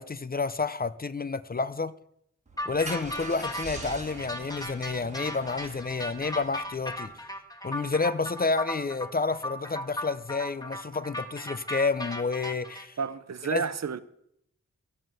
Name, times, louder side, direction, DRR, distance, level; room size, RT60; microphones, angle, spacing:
voice 1, 0.0-2.0 2.7-7.1 7.6-13.0 13.5-13.7, left 4 dB, 30° left, 0.5 m, -30 dB
Car / Engine starting, 2.5-7.1, right 3 dB, 25° right, 5.1 m, -43 dB
sound 1, 2.6-12.8, left 1 dB, 10° left, 1.5 m, -37 dB
voice 2, 13.0-14.0, right 6 dB, 60° right, 0.7 m, -31 dB
13.0 x 7.6 x 7.6 m
wide cardioid pair, 105°, 30 cm